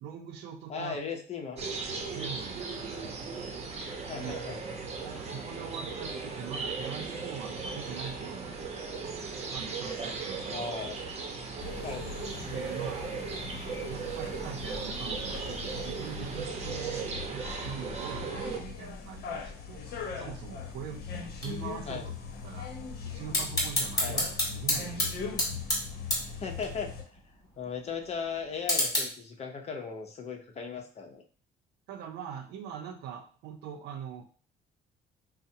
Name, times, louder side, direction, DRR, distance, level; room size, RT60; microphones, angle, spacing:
voice 1, 0.0-1.0 2.1-3.0 4.2-4.3 5.0-8.6 9.5-10.7 12.4-13.2 13.9-21.0 21.3-22.1 22.4-22.7 23.0-25.6 31.9-34.3, right 8 dB, 80° right, 6 dB, 0.5 m, -42 dB
voice 2, 0.7-1.6 4.1-4.6 10.5-11.1 11.8-12.1 21.9-22.1 24.0-24.2 26.4-26.9 27.6-31.2, left 5 dB, 40° left, 3 dB, 0.7 m, -37 dB
sound 1, 1.6-18.6, right 4 dB, 40° right, 0.8 m, -37 dB
sound 2, 11.6-27.0, left 5 dB, 70° left, 0.8 m, -41 dB
sound 3, 21.3-29.0, left 1 dB, 20° left, 1.8 m, -33 dB
5.4 x 2.1 x 2.7 m, 0.41 s
cardioid pair, 110°, 17 cm